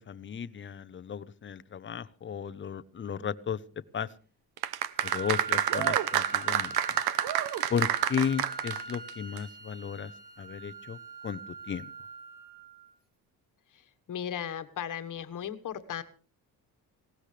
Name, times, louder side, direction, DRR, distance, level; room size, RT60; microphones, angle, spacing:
voice 1, 0.0-3.6 3.9-4.1 5.0-6.8 7.7-10.1 10.4-11.0 11.2-11.4 11.7-11.9, left 7 dB, 30° left, 16 dB, 0.8 m, -34 dB
sound 1, 4.6-9.1 9.4-9.5, right 12 dB, 80° right, 1.0 m, -28 dB
Wind instrument woodwind instrument, 4.9-12.9, right 3 dB, 25° right, 4.0 m, -42 dB
voice 2, 13.7-16.0, left 9 dB, 55° left, 10 dB, 1.5 m, -37 dB
19.0 x 17.5 x 3.3 m, 0.38 s
cardioid pair, 125°, 37 cm